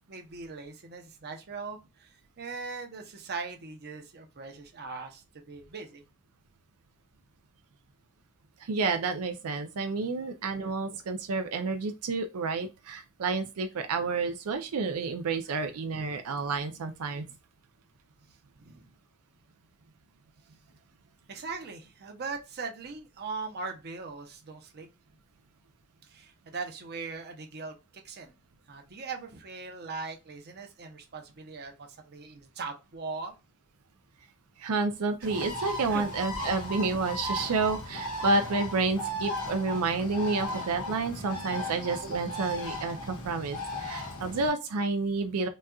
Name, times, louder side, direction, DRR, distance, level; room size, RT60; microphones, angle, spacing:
voice 1, 0.0-6.0 18.6-18.8 21.3-24.9 26.0-28.3 28.7-33.3 35.2-35.3 35.9-36.0, right 4 dB, 50° right, 0.7 m, -40 dB
voice 2, 8.6-17.3 34.6-45.5, right 3 dB, 90° right, 0.5 m, -30 dB
Bird, 35.2-44.5, left 1 dB, 80° left, 1.2 m, -36 dB
4.1 x 2.3 x 2.3 m
head